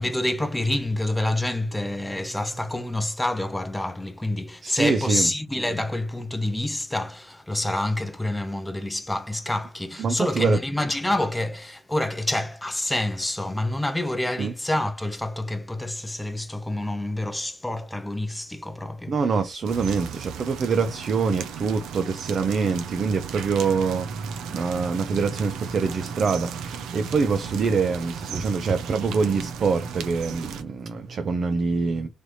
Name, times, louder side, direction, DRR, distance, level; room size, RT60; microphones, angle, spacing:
voice 1, 0.0-19.2, left 1 dB, 5° left, 0.6 m, -27 dB
voice 2, 4.6-5.3 10.0-10.6 14.4-14.5 19.1-32.1, right 4 dB, 40° right, 0.5 m, -25 dB
sound 1, 19.6-30.6, right 7 dB, 90° right, 0.7 m, -36 dB
3.3 x 3.3 x 4.0 m
cardioid pair, 135°, 0 cm